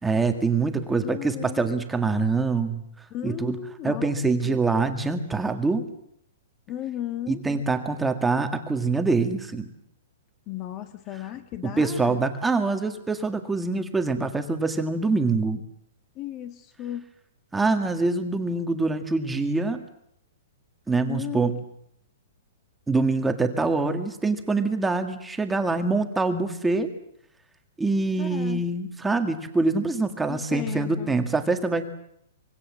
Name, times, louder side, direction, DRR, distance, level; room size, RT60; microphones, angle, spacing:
voice 1, 0.0-2.8 3.2-3.6 3.8-5.8 7.3-9.7 11.6-15.6 17.5-19.8 20.9-21.6 22.9-26.9 27.8-31.9, right 3 dB, 5° right, 6 dB, 1.8 m, -25 dB
voice 2, 1.0-1.7 3.1-4.1 4.4-4.6 6.7-7.4 10.5-12.2 16.1-17.1 21.0-21.5 28.2-28.6 30.3-31.1, left 12 dB, 25° left, 10 dB, 1.5 m, -35 dB
25.5 x 23.0 x 7.4 m, 0.72 s
hypercardioid pair, 160°, 0 cm